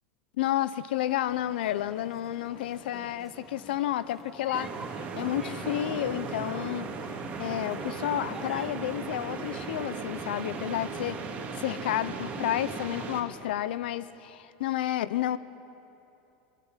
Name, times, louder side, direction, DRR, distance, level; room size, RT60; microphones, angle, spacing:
voice 1, 0.4-6.9 7.4-11.2 11.6-15.4, left 12 dB, 85° left, 0.9 m, -31 dB
sound 1, 1.3-11.1, right 1 dB, 5° right, 1.4 m, -49 dB
sound 2, 4.5-13.2, right 4 dB, 25° right, 2.6 m, -37 dB
21.5 x 21.0 x 9.3 m
supercardioid pair, 150°, 5 cm